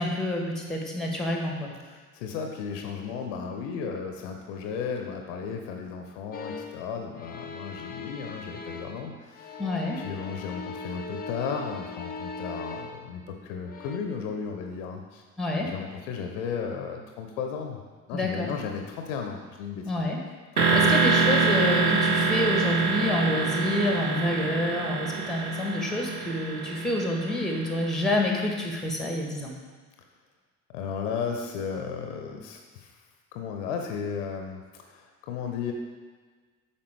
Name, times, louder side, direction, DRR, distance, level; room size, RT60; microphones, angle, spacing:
voice 1, 0.0-1.7 9.6-10.0 15.4-15.7 18.1-18.5 19.8-20.2 20.7-29.5, left 1 dB, ahead, 0 dB, 1.3 m, -28 dB
voice 2, 1.9-9.6 10.0-15.2 15.6-17.8 18.1-20.1 20.5-20.9 30.7-32.9 33.3-34.6 34.9-35.7, left 6 dB, 55° left, 3 dB, 0.9 m, -34 dB
sound 1, 6.3-6.9 7.1-9.1 9.3-13.1 13.6-14.0, left 3 dB, 20° left, 0.7 m, -40 dB
sound 2, 20.6-28.3, right 4 dB, 85° right, 0.8 m, -25 dB
8.5 x 5.5 x 3.4 m, 1.4 s
figure-of-eight pair, 60°, 43 cm